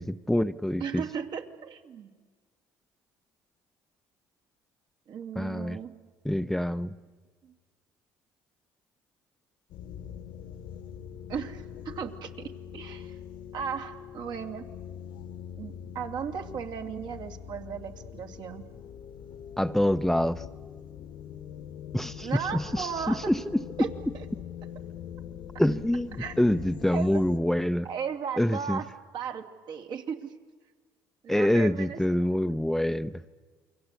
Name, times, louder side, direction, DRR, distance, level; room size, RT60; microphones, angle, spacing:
voice 1, 0.0-1.0 5.4-5.8 6.2-6.9 19.6-20.4 21.9-22.9 23.3-23.6 25.6-27.9 28.4-28.8 31.3-33.1, left 1 dB, 5° left, 11 dB, 0.7 m, -26 dB
voice 2, 0.8-2.1 5.1-5.9 7.4-7.5 11.3-13.2 13.5-14.7 15.6-18.6 22.2-23.3 23.8-23.9 24.1-24.2 26.2-26.4 26.9-27.2 27.8-30.3 31.2-32.5, right 7 dB, 60° right, 4 dB, 2.7 m, -36 dB
sound 1, 9.7-27.4, left 9 dB, 70° left, 1.4 m, -43 dB
28.5 x 23.0 x 8.4 m, 1.5 s
supercardioid pair, 80°, 8 cm